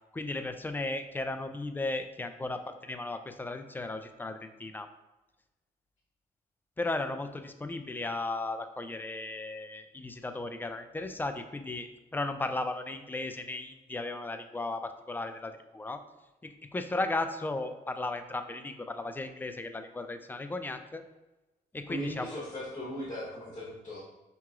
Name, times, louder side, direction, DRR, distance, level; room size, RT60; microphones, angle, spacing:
voice 1, 0.1-4.9 6.8-16.0 16.4-21.0 21.7-22.3, left 2 dB, 10° left, 8 dB, 0.3 m, -35 dB
voice 2, 21.9-24.0, equal, 30° left, -5 dB, 1.1 m, -38 dB
5.5 x 3.0 x 2.4 m, 1.0 s
cardioid pair, 95°, 16 cm